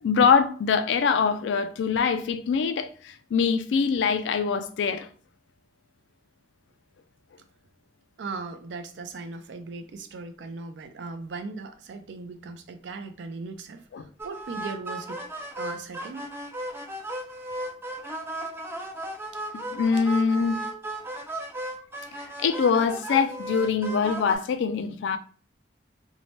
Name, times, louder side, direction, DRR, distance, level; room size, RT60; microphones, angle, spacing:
voice 1, 0.0-5.1 13.9-14.0 19.7-20.6 22.4-25.2, left 6 dB, 85° left, 0.3 m, -23 dB
voice 2, 8.2-15.3 15.6-16.3, right 3 dB, 75° right, 0.4 m, -38 dB
sound 1, 14.2-24.4, right 1 dB, 15° right, 0.4 m, -35 dB
2.7 x 2.1 x 3.0 m
head